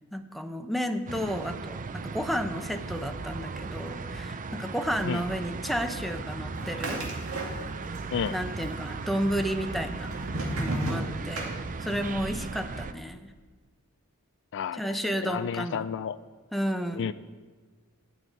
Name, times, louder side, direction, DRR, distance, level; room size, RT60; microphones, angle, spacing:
voice 1, 0.1-7.0 8.3-10.1 10.6-11.5 11.8-13.3 14.7-15.9 16.5-17.1, equal, ahead, 6 dB, 0.7 m, -32 dB
sound 1, 1.1-12.9, right 4 dB, 40° right, 0.5 m, -37 dB
sound 2, 6.5-8.0 8.3-9.0 9.6-12.1, right 1 dB, 70° right, 2.4 m, -33 dB
voice 2, 14.5-16.2 16.9-17.1, left 7 dB, 55° left, 15 dB, 0.4 m, -32 dB
12.5 x 6.3 x 9.2 m, 1.4 s
head